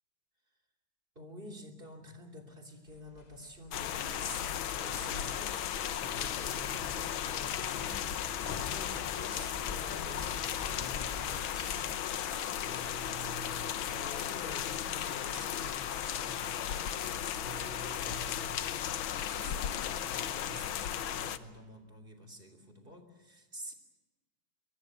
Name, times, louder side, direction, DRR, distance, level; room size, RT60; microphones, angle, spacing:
voice 1, 1.1-5.6 5.9-12.0 12.6-19.0 19.3-23.7, right 1 dB, 25° right, 5 dB, 3.3 m, -49 dB
sound 1, 2.9-12.0, left 3 dB, 55° left, 0.4 m, -47 dB
sound 2, 3.7-21.4, left 10 dB, 80° left, 1.8 m, -35 dB
23.0 x 23.0 x 7.8 m, 1.3 s
omnidirectional pair, 2.2 m